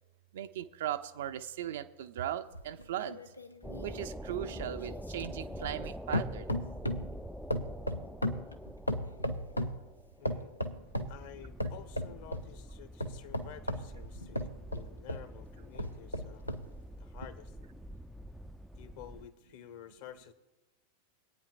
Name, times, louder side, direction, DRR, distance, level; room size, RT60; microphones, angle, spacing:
voice 1, 0.3-3.2 3.8-6.6, right 11 dB, 55° right, 10 dB, 0.5 m, -38 dB
sound 1, 2.5-5.9 6.1-7.1 7.5-9.8 10.3-11.2 11.6-12.5 13.0-15.3 15.8-16.7 17.2-17.3, equal, 85° left, 0.7 m, -36 dB
sound 2, 3.6-19.3, equal, ahead, 0.4 m, -46 dB
voice 2, 10.2-10.6 11.1-16.5 17.0-17.5 18.8-20.3, left 10 dB, 50° left, 9 dB, 1.1 m, -51 dB
23.5 x 9.2 x 2.4 m, 1.1 s
figure-of-eight pair, 90°, 0 cm